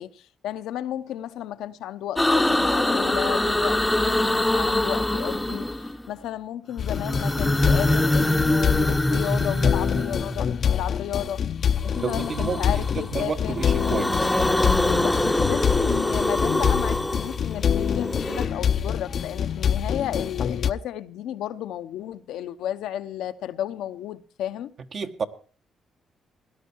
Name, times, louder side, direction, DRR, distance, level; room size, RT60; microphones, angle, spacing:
voice 1, 0.0-11.4 11.8-13.6 14.9-24.7, left 11 dB, 85° left, 0.9 m, -33 dB
sound 1, 2.2-6.1 6.8-10.6 11.9-13.1 13.5-18.5, left 1 dB, 10° left, 0.8 m, -24 dB
sound 2, 6.8-20.7, left 8 dB, 55° left, 0.6 m, -26 dB
voice 2, 11.9-14.3 24.9-25.2, right 5 dB, 55° right, 1.5 m, -30 dB
18.0 x 11.5 x 4.6 m
cardioid pair, 90°, 0 cm